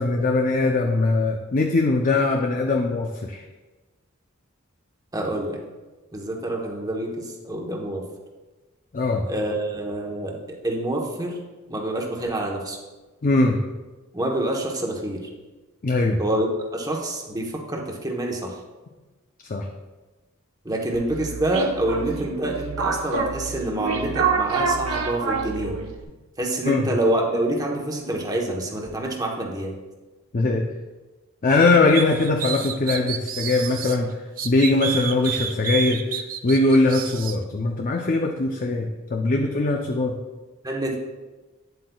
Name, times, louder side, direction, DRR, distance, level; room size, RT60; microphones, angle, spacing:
voice 1, 0.0-3.4 8.9-9.2 13.2-13.6 15.8-16.2 19.5-19.7 26.7-26.9 30.3-30.7 31.4-34.1 34.4-36.2 36.4-40.2, left 2 dB, 40° left, 2 dB, 0.5 m, -21 dB
voice 2, 5.1-5.6 6.1-8.0 9.2-11.4 11.7-12.8 14.1-15.3 16.2-18.5 20.6-25.7 26.4-29.7 40.6-41.0, right 1 dB, 20° right, 0 dB, 1.0 m, -27 dB
sound 1, 20.9-26.0, right 5 dB, 85° right, 1.0 m, -27 dB
sound 2, 31.9-34.0 34.4-37.4, right 8 dB, 45° right, 0.5 m, -30 dB
9.4 x 7.8 x 2.3 m, 1.2 s
head